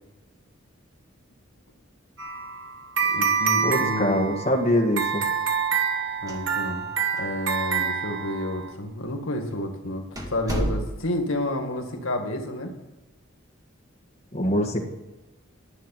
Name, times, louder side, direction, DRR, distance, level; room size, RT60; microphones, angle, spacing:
sound 1, 2.2-8.7, right 6 dB, 65° right, 1.8 m, -27 dB
voice 1, 3.0-4.3 6.2-6.9 7.1-12.7, left 1 dB, 85° left, 4 dB, 2.0 m, -30 dB
voice 2, 3.6-5.3 14.3-14.8, equal, 30° left, 0 dB, 1.8 m, -23 dB
sound 2, 6.1-6.9 7.2-7.3 8.0-8.1 8.9-9.1 9.5-9.6 10.2-11.3, equal, 20° right, 2.2 m, -31 dB
11.0 x 8.0 x 9.0 m, 1.1 s
head